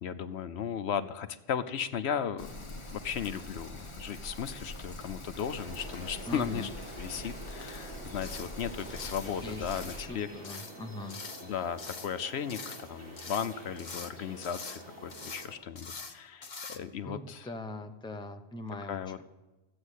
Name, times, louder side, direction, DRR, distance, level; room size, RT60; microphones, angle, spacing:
voice 1, 0.0-6.7 7.0-10.6 11.4-17.5 18.9-19.2, left 8 dB, 70° left, 11 dB, 0.9 m, -36 dB
Rain, 2.4-10.0, left 1 dB, 25° left, 1.2 m, -44 dB
sound 1, 5.4-15.6, right 2 dB, 40° right, 3.8 m, -48 dB
voice 2, 6.2-6.7 8.9-9.0 9.4-9.6 10.0-11.2 16.5-16.7 17.0-19.2, left 1 dB, 5° left, 5 dB, 0.7 m, -41 dB
sound 2, 7.7-7.9 8.2-8.6 8.9-9.3 9.7-10.1 10.4-10.8 11.1-11.5 11.8-12.1 12.5-12.9 13.2-14.1 14.4-14.8 15.1-15.5 15.8-16.2 16.4-16.8, left 4 dB, 40° left, 1.1 m, -44 dB
14.0 x 8.7 x 8.2 m, 1.1 s
omnidirectional pair, 1.2 m